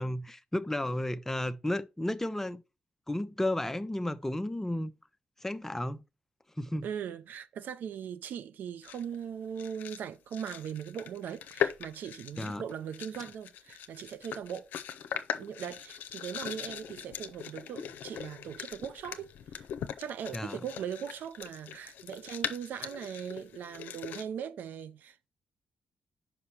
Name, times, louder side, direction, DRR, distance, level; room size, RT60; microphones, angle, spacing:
voice 1, 0.0-2.6 3.1-4.9 5.4-6.0 6.6-6.9 12.4-12.6 20.3-20.6, left 1 dB, 10° left, 0.8 m, -33 dB
voice 2, 6.8-14.7 15.4-19.7 20.0-25.3, right 8 dB, 80° right, 0.5 m, -40 dB
sound 1, 8.8-9.2 9.6-10.0 10.3-24.2, left 9 dB, 85° left, 0.6 m, -40 dB
5.4 x 5.0 x 5.7 m
supercardioid pair, 55°, 3 cm